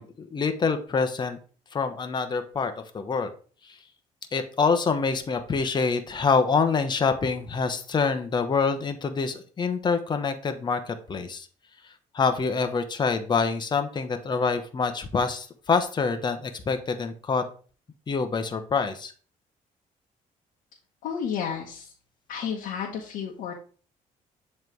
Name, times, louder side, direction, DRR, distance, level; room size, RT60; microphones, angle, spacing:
voice 1, 0.0-1.4 1.7-3.3 3.6-3.8 4.3-11.5 12.1-17.4 18.1-19.1, left 5 dB, 30° left, 8 dB, 0.9 m, -26 dB
voice 2, 21.0-21.9 22.3-23.5, left 7 dB, 80° left, -2 dB, 1.0 m, -32 dB
7.4 x 3.2 x 4.6 m, 0.40 s
cardioid pair, 110°, 14 cm